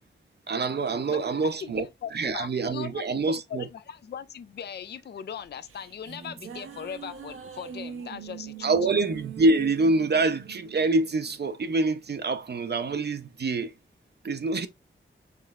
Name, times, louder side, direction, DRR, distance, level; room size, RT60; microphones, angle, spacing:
voice 1, 0.5-1.8 2.1-3.7 8.6-13.7 14.2-14.7, right 3 dB, 55° right, 0.5 m, -26 dB
voice 2, 1.6-8.7, left 8 dB, 55° left, 0.4 m, -39 dB
sound 1, 5.4-12.0, right 8 dB, 85° right, 0.7 m, -42 dB
5.8 x 3.2 x 2.3 m
wide cardioid pair, 90°, 21 cm